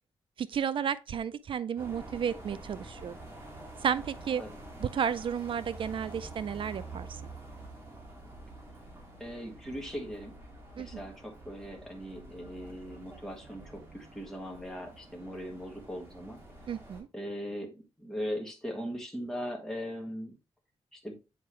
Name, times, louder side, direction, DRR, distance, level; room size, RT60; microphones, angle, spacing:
voice 1, 0.4-3.2 3.8-4.4 4.8-7.1 10.8-11.0 16.7-17.1, right 8 dB, 55° right, 0.4 m, -32 dB
sound 1, 1.8-17.0, right 2 dB, 20° right, 1.9 m, -48 dB
voice 2, 9.2-10.4 10.8-16.4 17.1-20.4 20.9-21.2, equal, 5° left, 1.5 m, -39 dB
7.7 x 4.6 x 3.1 m
wide cardioid pair, 160°, 11 cm